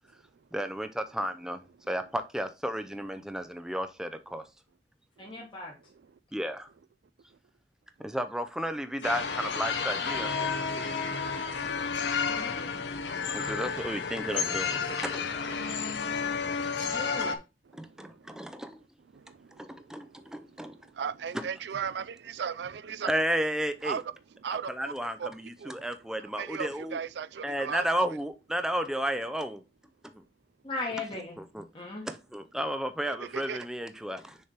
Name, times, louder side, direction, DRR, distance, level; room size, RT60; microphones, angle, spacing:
voice 1, 0.5-4.4 6.3-6.7 8.0-11.0 13.3-15.2 17.7-18.8 19.6-20.8 21.3-21.5 23.1-24.0 24.7-27.0 27.4-29.6 30.0-30.2 31.4-31.7 32.0-34.4, equal, 5° right, 0.5 m, -33 dB
voice 2, 5.2-5.8 12.2-12.6 16.8-17.3 30.6-31.4 31.7-32.1, left 2 dB, 30° left, 1.3 m, -37 dB
sound 1, 9.0-17.3, left 5 dB, 90° left, 1.0 m, -31 dB
voice 3, 17.7-18.6 19.1-20.3 20.7-23.1 23.8-24.0 24.4-24.9 25.2-25.3 25.6-25.7 26.3-27.9 33.0-33.7, right 7 dB, 70° right, 0.4 m, -38 dB
6.5 x 3.4 x 4.3 m
head